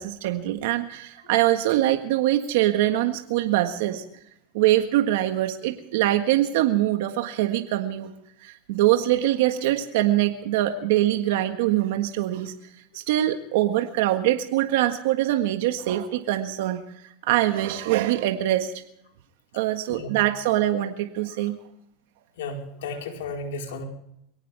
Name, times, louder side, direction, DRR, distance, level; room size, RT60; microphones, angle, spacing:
voice 1, 0.0-4.0 4.5-8.1 8.4-12.5 12.9-16.8 17.2-18.7 19.5-21.6, right 14 dB, 75° right, 6 dB, 1.6 m, -23 dB
voice 2, 22.4-23.8, left 3 dB, 90° left, 2 dB, 4.6 m, -34 dB
23.0 x 18.0 x 3.5 m, 0.75 s
supercardioid pair, 135°, 0 cm